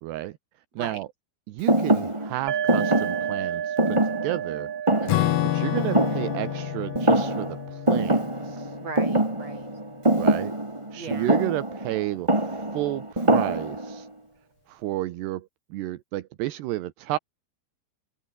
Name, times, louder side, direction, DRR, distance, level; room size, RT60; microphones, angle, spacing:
voice 1, 0.0-0.4 0.8-1.1 1.5-4.7 5.5-8.7 10.2-10.5 10.9-14.1 14.7-17.2, right 16 dB, 75° right, 3.1 m, -31 dB
Thump thud, 1.7-6.7 6.9-7.6 7.9-14.0, right 1 dB, 10° right, 2.1 m, -24 dB
sound 1, 2.5-10.0, right 9 dB, 55° right, 1.7 m, -34 dB
voice 2, 5.0-5.4 8.7-9.7 10.9-11.3, right 3 dB, 35° right, 8.5 m, -38 dB
Acoustic guitar / Strum, 5.1-9.9, left 19 dB, 75° left, 2.5 m, -30 dB
omnidirectional pair, 5.0 m